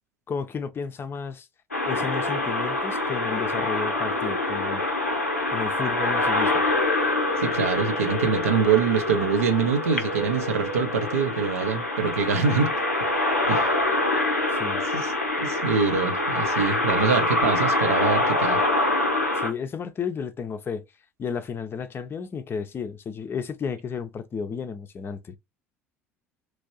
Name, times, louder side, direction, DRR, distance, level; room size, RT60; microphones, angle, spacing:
voice 1, 0.3-1.5 1.8-4.8 5.5-6.6 14.5-14.8 19.4-20.8 21.2-25.4, left 6 dB, 30° left, 0.5 m, -32 dB
sound 1, 1.7-19.5, left 2 dB, 90° left, 0.5 m, -25 dB
voice 2, 7.4-12.7 13.5-13.6 14.9-15.1 15.4-18.6, right 5 dB, 75° right, 0.5 m, -24 dB
3.0 x 2.6 x 2.6 m
figure-of-eight pair, 60°, 8 cm